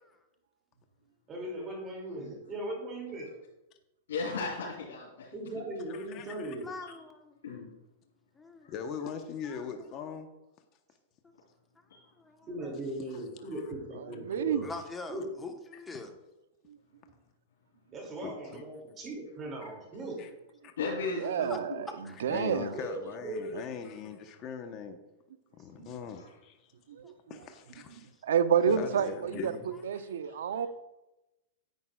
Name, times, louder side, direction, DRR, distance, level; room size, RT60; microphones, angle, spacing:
voice 1, 1.3-3.3 5.3-6.7 12.5-14.7 15.1-15.3 17.9-20.2 22.7-23.7 28.8-29.6, right 1 dB, 25° right, -1 dB, 2.5 m, -39 dB
voice 2, 4.1-5.3 7.4-7.7 8.6-8.7 11.9-12.0 20.8-21.8 30.2-30.3, left 3 dB, 80° left, -6 dB, 3.0 m, -35 dB
voice 3, 5.9-6.5 8.7-10.3 15.7-15.8 18.2-18.6 20.2-20.3 20.6-20.7 22.3-25.0 25.6-26.6 27.3-28.1 28.7-29.6 29.9-30.1, left 6 dB, 40° left, 6 dB, 0.9 m, -40 dB
voice 4, 6.6-7.4 8.3-8.7 9.4-9.7 12.2-12.5 14.6-16.1 21.2-21.6 22.0-22.2 27.0-27.1 27.4-27.5, left 3 dB, 10° left, 4 dB, 1.1 m, -44 dB
voice 5, 14.2-14.6 16.7-16.8 21.2-21.9 22.2-22.7 26.9-27.2 28.2-30.7, right 7 dB, 80° right, 13 dB, 0.6 m, -29 dB
10.5 x 8.7 x 2.4 m, 0.97 s
hypercardioid pair, 125°, 0 cm